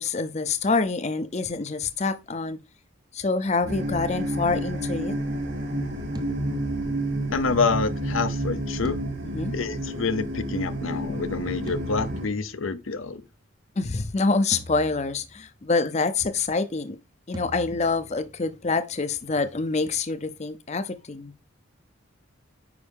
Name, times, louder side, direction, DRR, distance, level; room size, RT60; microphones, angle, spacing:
voice 1, 0.0-2.6 3.1-5.1 9.2-9.5 13.8-17.0 17.3-21.3, left 3 dB, 35° left, 0.6 m, -26 dB
sound 1, 3.6-4.9 6.1-7.8 8.8-10.2 11.7-13.0 14.5-15.7 17.3-18.8, right 1 dB, 20° right, 0.7 m, -43 dB
sound 2, 3.7-12.3, right 1 dB, 60° right, 3.0 m, -30 dB
voice 2, 7.3-9.0 9.5-13.2, left 4 dB, 80° left, 0.7 m, -27 dB
9.7 x 5.4 x 3.5 m
head